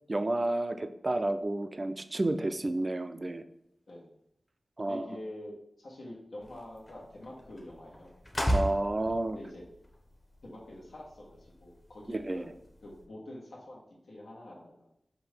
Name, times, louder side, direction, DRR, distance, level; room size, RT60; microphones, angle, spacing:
voice 1, 0.1-3.4 4.8-5.1 8.5-9.4 12.1-12.4, right 2 dB, 40° right, 9 dB, 0.4 m, -31 dB
voice 2, 4.8-8.1 9.3-9.6 10.4-14.9, left 1 dB, 85° left, -4 dB, 1.4 m, -46 dB
sound 1, 6.4-13.1, equal, 25° left, 0.9 m, -38 dB
5.8 x 2.6 x 3.4 m, 0.79 s
wide cardioid pair, 60°, 0 cm